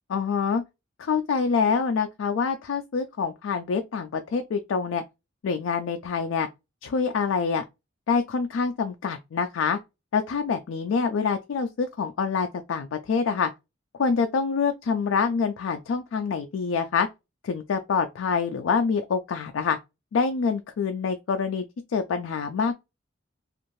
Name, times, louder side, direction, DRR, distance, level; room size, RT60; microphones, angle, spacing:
voice 1, 0.1-0.6 1.0-5.0 5.4-6.5 6.8-7.6 8.1-9.8 10.1-13.5 14.0-17.1 17.4-19.8 20.1-21.6 21.9-22.7, left 5 dB, 90° left, 0.4 m, -26 dB
2.6 x 2.4 x 3.0 m
head